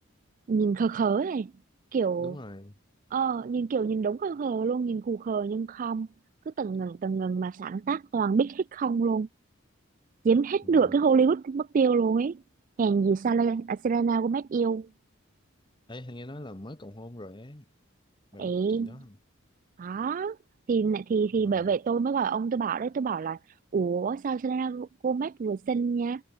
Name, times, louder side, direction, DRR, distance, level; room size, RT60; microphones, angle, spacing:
voice 1, 0.5-1.5 1.9-2.4 3.1-6.1 6.5-9.3 10.2-12.4 12.8-14.9 18.4-19.0 19.8-20.4 20.7-23.4 23.7-26.2, right 5 dB, 40° right, 0.3 m, -26 dB
voice 2, 2.2-2.8 10.6-10.9 15.9-17.7 18.3-19.2 21.4-21.7, left 1 dB, 25° left, 1.5 m, -43 dB
head